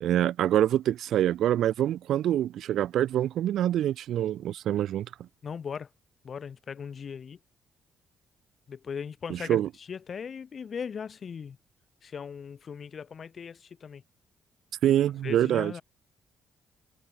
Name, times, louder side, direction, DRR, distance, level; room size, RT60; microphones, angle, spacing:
voice 1, 0.0-5.1 9.3-9.7 14.8-15.7, right 11 dB, 75° right, 0.9 m, -25 dB
voice 2, 5.4-5.9 6.2-7.4 8.7-11.6 12.0-14.0 15.2-15.8, left 6 dB, 45° left, 1.9 m, -38 dB
cardioid pair, 90°, 0 cm